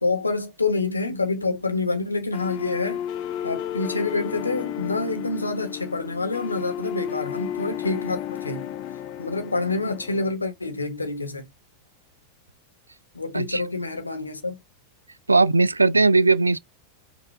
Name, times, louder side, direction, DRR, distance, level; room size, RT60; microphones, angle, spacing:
voice 1, 0.0-3.0 3.4-8.7 9.2-11.5 13.1-14.6, left 3 dB, 80° left, 1.1 m, -27 dB
sound 1, 2.3-10.3, left 11 dB, 40° left, 0.5 m, -33 dB
voice 2, 15.3-16.6, right 3 dB, 80° right, 0.3 m, -18 dB
5.4 x 2.6 x 3.3 m
figure-of-eight pair, 90°, 0 cm